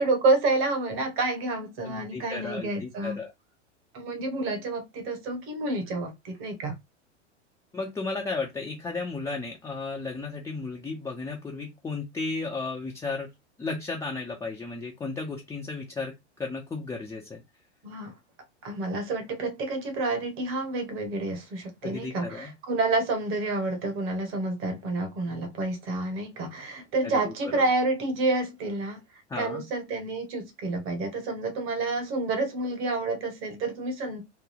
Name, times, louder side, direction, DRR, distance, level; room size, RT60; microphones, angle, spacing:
voice 1, 0.0-3.2 3.9-6.8 17.8-18.1 18.6-29.0 29.4-34.2, right 2 dB, 35° right, 1.2 m, -29 dB
voice 2, 1.8-3.3 7.7-13.3 13.6-16.1 16.4-17.4 21.8-22.5 27.0-27.6 29.3-29.6, left 3 dB, 10° left, 0.5 m, -34 dB
3.7 x 2.2 x 3.2 m
figure-of-eight pair, 95°, 36 cm